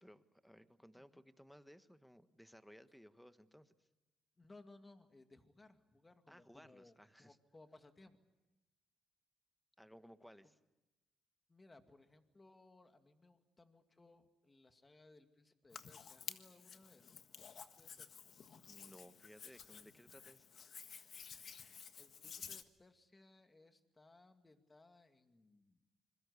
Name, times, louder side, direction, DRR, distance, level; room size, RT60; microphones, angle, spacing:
voice 1, 0.0-3.7 6.3-7.4 9.8-10.6 18.6-20.5, equal, ahead, 11 dB, 1.3 m, -60 dB
voice 2, 4.4-8.2 11.5-17.2 17.8-18.3 22.0-25.8, left 2 dB, 20° left, 7 dB, 2.3 m, -64 dB
Hands, 15.7-22.6, left 7 dB, 60° left, 1.5 m, -53 dB
26.0 x 22.0 x 8.3 m, 1.0 s
cardioid pair, 90°, 0 cm